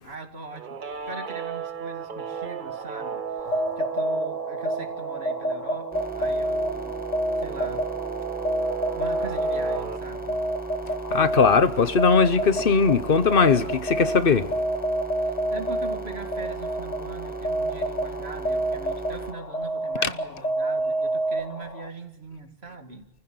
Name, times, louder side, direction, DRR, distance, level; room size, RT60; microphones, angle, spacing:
voice 1, 0.0-7.0 7.4-7.9 8.9-10.4 15.2-23.1, right 3 dB, 75° right, 2.6 m, -41 dB
Guitar, 0.5-10.0, right 7 dB, 50° right, 1.1 m, -35 dB
sound 1, 3.4-21.9, right 1 dB, 40° left, 1.4 m, -29 dB
sound 2, 5.9-19.3, right 4 dB, 10° right, 1.3 m, -36 dB
voice 2, 11.1-14.5 20.0-20.1, left 5 dB, 60° left, 1.1 m, -20 dB
28.0 x 15.0 x 7.8 m
omnidirectional pair, 1.1 m